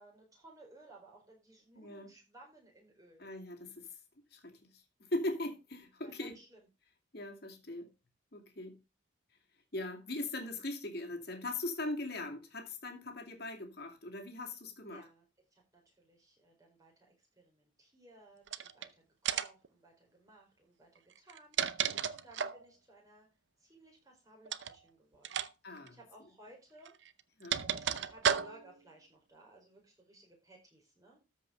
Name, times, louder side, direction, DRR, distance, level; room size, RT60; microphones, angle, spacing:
voice 1, 0.0-3.2 6.0-6.6 14.9-15.2 15.5-23.3 23.6-25.4 25.7-27.0 27.8-31.2, right 1 dB, 15° right, 4.5 m, -59 dB
voice 2, 1.8-2.1 3.2-3.9 4.3-6.4 7.1-7.9 8.3-8.7 9.7-15.1 25.6-26.0 27.4-27.6, left 2 dB, 50° left, 2.5 m, -40 dB
sound 1, 18.5-18.9 19.3-19.7 21.2-22.7 24.5-24.8 25.2-25.5 25.8-25.9 26.9-28.8, right 8 dB, 65° right, 0.7 m, -34 dB
13.5 x 5.4 x 5.1 m
head